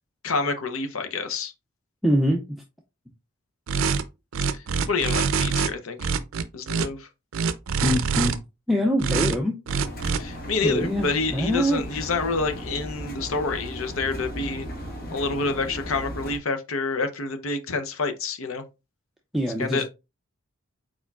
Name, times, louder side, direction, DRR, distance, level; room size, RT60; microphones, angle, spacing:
voice 1, 0.2-1.5 4.5-6.1 6.5-7.1 10.1-14.7 15.1-18.6 19.6-19.8, left 3 dB, 75° left, 0.7 m, -28 dB
voice 2, 2.0-2.6 7.8-8.4 8.7-9.6 10.6-11.1 11.3-12.1 19.3-19.9, equal, ahead, 0.4 m, -24 dB
sound 1, 3.7-4.0 4.3-5.7 6.0-6.9 7.3-8.3 9.0-9.3 9.7-10.2, right 5 dB, 70° right, 0.4 m, -24 dB
Engine, 9.7-16.4, equal, 45° left, 0.9 m, -36 dB
4.5 x 4.5 x 2.3 m
head